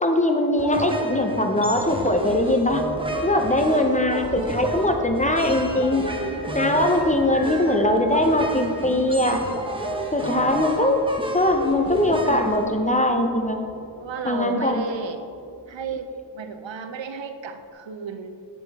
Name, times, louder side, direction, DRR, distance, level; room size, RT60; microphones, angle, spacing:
voice 1, 0.0-2.8 3.2-6.0 6.5-9.4 10.1-11.0 11.3-13.6 14.2-14.9, left 1 dB, 15° left, 4 dB, 0.8 m, -21 dB
sound 1, 0.6-13.3, right 1 dB, 10° right, 1.0 m, -31 dB
sound 2, 1.8-16.1, right 1 dB, 60° right, 1.5 m, -42 dB
voice 2, 14.0-15.2 15.7-18.5, right 5 dB, 80° right, 8 dB, 0.6 m, -33 dB
8.4 x 7.4 x 3.6 m, 2.5 s
cardioid pair, 50°, 44 cm